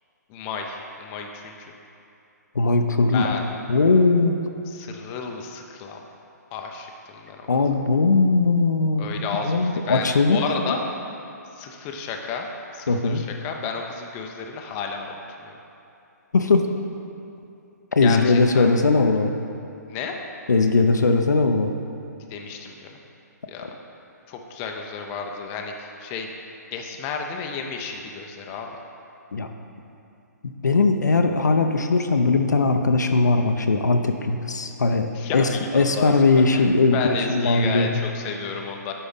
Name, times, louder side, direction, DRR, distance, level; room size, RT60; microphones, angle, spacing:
voice 1, 0.3-1.7 3.1-3.4 4.7-6.0 6.5-7.4 9.0-10.8 11.6-12.5 12.7-15.1 15.4-15.5 18.0-18.7 19.9-20.2 22.3-23.0 23.5-23.6 24.3-26.3 26.7-28.8 35.1-36.6 36.9-38.9, left 5 dB, 25° left, 2 dB, 0.5 m, -32 dB
voice 2, 2.6-3.4 3.7-4.4 7.5-9.0 9.4-10.4 10.7-10.8 12.9-13.2 16.3-16.7 17.9-19.3 20.5-21.7 23.6-23.7 29.3-29.5 30.4-38.0, left 3 dB, 75° left, 6 dB, 0.5 m, -20 dB
8.0 x 5.1 x 3.9 m, 2.7 s
figure-of-eight pair, 130°, 10 cm